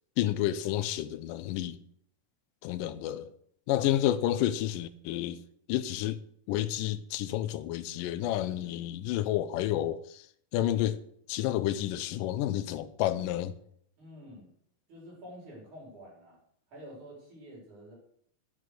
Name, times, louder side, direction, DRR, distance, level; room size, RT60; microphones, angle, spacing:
voice 1, 0.2-1.8 2.6-3.3 3.7-5.4 5.7-6.2 6.5-10.2 10.5-11.0 11.3-13.5, left 12 dB, 85° left, 2.3 m, -30 dB
voice 2, 14.0-14.5 14.9-16.4 16.7-18.0, equal, 60° right, 6.0 m, -48 dB
9.4 x 8.4 x 6.6 m
omnidirectional pair, 3.9 m